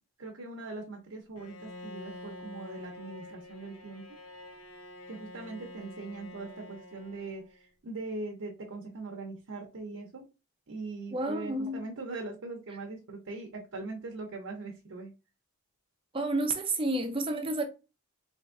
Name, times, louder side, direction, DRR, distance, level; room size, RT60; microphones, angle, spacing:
voice 1, 0.2-4.0 5.1-10.3 10.7-15.1, right 3 dB, 75° right, 0.7 m, -41 dB
Bowed string instrument, 1.4-7.6, left 1 dB, 80° left, 0.7 m, -47 dB
voice 2, 11.1-11.8 16.1-17.6, right 2 dB, 25° right, 0.5 m, -30 dB
3.4 x 2.8 x 2.5 m
head